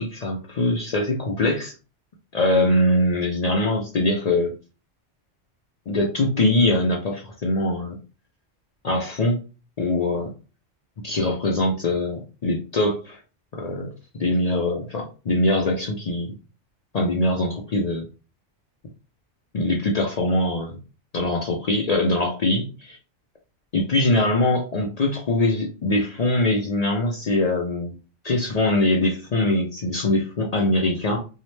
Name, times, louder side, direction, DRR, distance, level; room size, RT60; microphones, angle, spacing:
voice 1, 0.0-1.7 2.3-4.5 5.9-8.0 8.8-9.4 9.8-10.3 11.0-13.2 13.6-13.9 14.2-16.4 16.9-18.1 19.5-20.8 21.1-23.0 23.7-27.9 28.2-31.2, left 1 dB, 65° left, 0 dB, 0.4 m, -22 dB
2.7 x 2.1 x 3.0 m, 0.33 s
omnidirectional pair, 1.2 m